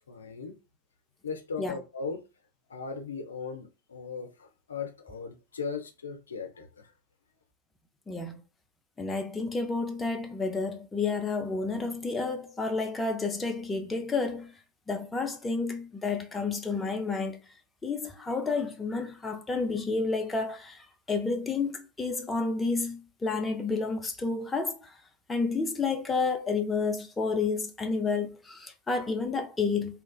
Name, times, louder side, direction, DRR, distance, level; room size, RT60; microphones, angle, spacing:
voice 1, 0.1-0.5 1.2-2.2 2.7-6.7, left 5 dB, 70° left, 0.5 m, -37 dB
voice 2, 9.0-14.5 14.9-17.4 17.8-24.7 25.3-30.0, left 4 dB, 10° left, 0.4 m, -30 dB
2.8 x 2.3 x 2.2 m
figure-of-eight pair, 90°, 0 cm